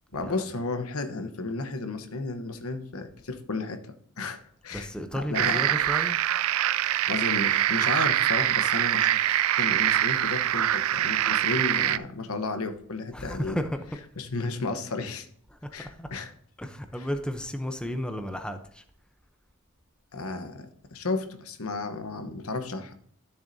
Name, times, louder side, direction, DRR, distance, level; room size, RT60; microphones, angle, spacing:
voice 1, 0.1-4.4 4.6-5.6 7.1-13.6 14.2-15.3 15.7-16.3 17.0-17.1 20.1-22.9, left 3 dB, 85° left, 8 dB, 1.0 m, -33 dB
voice 2, 4.7-6.2 13.1-13.8 15.5-16.1 16.6-18.8, equal, 5° left, 6 dB, 0.7 m, -33 dB
sound 1, 5.3-12.0, right 12 dB, 75° right, 0.4 m, -24 dB
13.0 x 7.1 x 2.7 m, 0.63 s
head